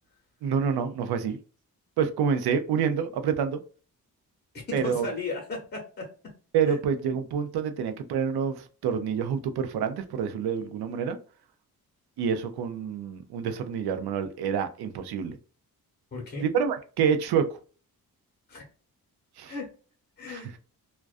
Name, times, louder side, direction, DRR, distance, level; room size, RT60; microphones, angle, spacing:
voice 1, 0.4-1.4 2.0-3.6 4.7-5.1 6.5-11.2 12.2-15.4 16.4-17.6 19.4-19.5 20.3-20.5, right 7 dB, 90° right, 8 dB, 0.5 m, -27 dB
voice 2, 4.5-6.1 6.7-6.8 16.1-16.5 18.5-18.6 19.5-19.7 20.2-20.5, left 3 dB, 25° left, 0 dB, 0.8 m, -35 dB
2.3 x 2.2 x 2.4 m, 0.38 s
wide cardioid pair, 150°, 37 cm